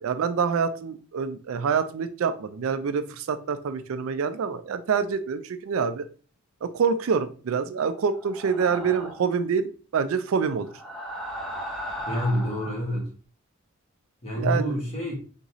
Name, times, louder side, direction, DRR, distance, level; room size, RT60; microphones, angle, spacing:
voice 1, 0.0-6.1 6.6-10.7 14.4-14.7, right 6 dB, 65° right, 0.4 m, -26 dB
sound 1, 8.2-9.4 10.6-12.8, equal, ahead, 0.7 m, -36 dB
voice 2, 12.1-13.1 14.2-15.1, equal, 30° left, 1.6 m, -27 dB
4.0 x 3.6 x 2.9 m
head